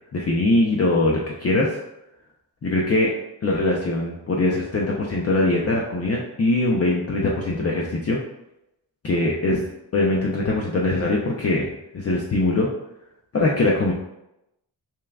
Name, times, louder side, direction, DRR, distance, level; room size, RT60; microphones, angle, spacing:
voice 1, 0.1-1.7 2.6-3.1 3.4-8.2 9.0-9.6 9.9-11.7 11.9-12.7 13.3-13.9, left 2 dB, 35° left, -3 dB, 0.6 m, -22 dB
5.6 x 2.3 x 2.3 m, 0.87 s
cardioid pair, 60°, 44 cm